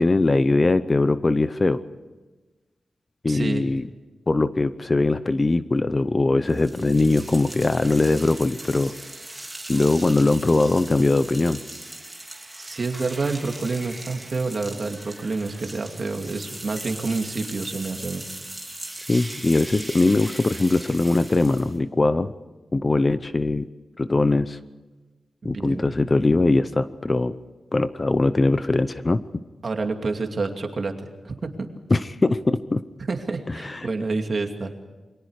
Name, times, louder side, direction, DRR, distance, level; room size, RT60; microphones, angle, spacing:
voice 1, 0.0-1.8 3.2-3.8 4.3-8.9 9.7-11.6 19.1-22.3 22.7-23.7 24.0-24.6 25.4-27.3 27.7-29.2 31.9-32.8 33.6-33.9, left 2 dB, 25° left, 12 dB, 0.7 m, -21 dB
voice 2, 3.3-3.6 12.6-18.2 25.4-25.8 29.6-30.9 31.2-31.7 33.1-34.7, right 3 dB, 45° right, 4 dB, 2.5 m, -28 dB
sound 1, 6.5-21.8, right 1 dB, 10° right, 3.2 m, -39 dB
28.0 x 23.0 x 4.9 m, 1.2 s
wide cardioid pair, 145°, 0 cm